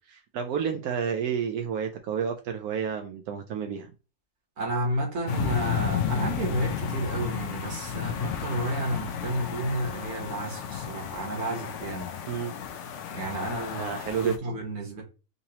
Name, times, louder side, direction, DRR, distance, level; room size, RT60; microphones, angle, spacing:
voice 1, 0.1-3.9 12.3-12.5 13.8-14.4, right 7 dB, 80° right, 1.1 m, -30 dB
voice 2, 4.6-12.1 13.1-15.0, right 1 dB, 50° right, 1.3 m, -31 dB
sound 1, 5.3-14.4, left 8 dB, 65° left, 0.8 m, -32 dB
3.9 x 2.8 x 2.8 m
omnidirectional pair, 1.6 m